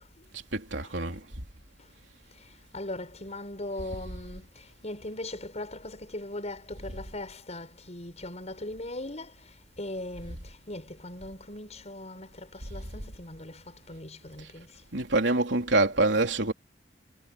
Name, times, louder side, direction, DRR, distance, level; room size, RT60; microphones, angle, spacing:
voice 1, 0.5-1.2 14.9-16.5, right 2 dB, 70° right, 3.7 m, -25 dB
voice 2, 2.7-4.5 4.8-9.3 9.8-13.6 13.9-14.7, left 1 dB, 35° left, 6.4 m, -39 dB
head